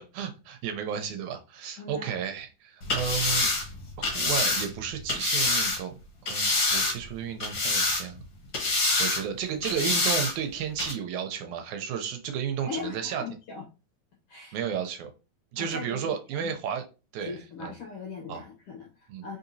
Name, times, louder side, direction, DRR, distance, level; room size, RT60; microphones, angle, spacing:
voice 1, 0.0-3.5 4.0-5.9 6.2-8.2 9.0-13.2 14.5-15.1 15.5-16.8 17.1-17.7 18.3-18.4 19.1-19.4, right 8 dB, 75° right, 6 dB, 1.9 m, -33 dB
voice 2, 1.8-2.2 12.6-13.6 14.3-14.6 15.6-16.5 17.2-19.4, left 4 dB, 75° left, 0 dB, 1.3 m, -40 dB
sound 1, 2.8-5.8 6.3-7.1 7.4-8.2 8.5-9.2 9.6-10.3 10.8-10.9, left 2 dB, 60° left, 1.3 m, -26 dB
4.4 x 3.9 x 2.6 m, 0.31 s
omnidirectional pair, 3.7 m